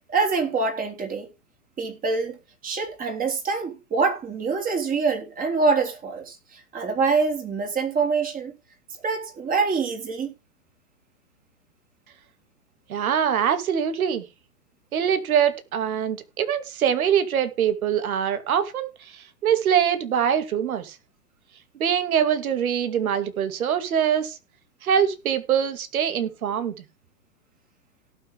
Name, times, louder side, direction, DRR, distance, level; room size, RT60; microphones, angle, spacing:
voice 1, 0.1-1.3 1.8-2.4 2.6-8.5 9.0-10.3, right 4 dB, 15° right, 3.6 m, -25 dB
voice 2, 12.9-14.2 14.9-20.9 21.8-24.4 24.8-26.7, right 8 dB, 60° right, 2.6 m, -23 dB
18.0 x 6.5 x 3.6 m
hypercardioid pair, 120°, 48 cm